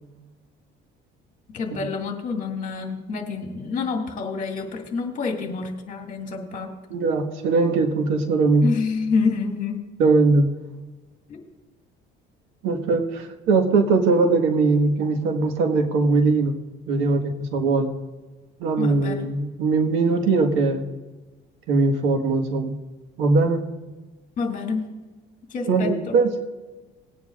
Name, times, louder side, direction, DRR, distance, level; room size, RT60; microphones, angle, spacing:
voice 1, 1.5-6.7 8.6-9.9 11.3-11.4 18.8-19.3 24.4-24.9 25.5-26.1, left 4 dB, 40° left, 2 dB, 2.2 m, -28 dB
voice 2, 6.9-8.7 10.0-10.5 12.6-16.5 16.9-17.9 18.6-20.8 21.7-22.7 23.2-23.6 25.7-26.5, right 3 dB, 90° right, 4 dB, 1.6 m, -20 dB
20.0 x 9.4 x 2.5 m, 1.2 s
cardioid pair, 125°, 20 cm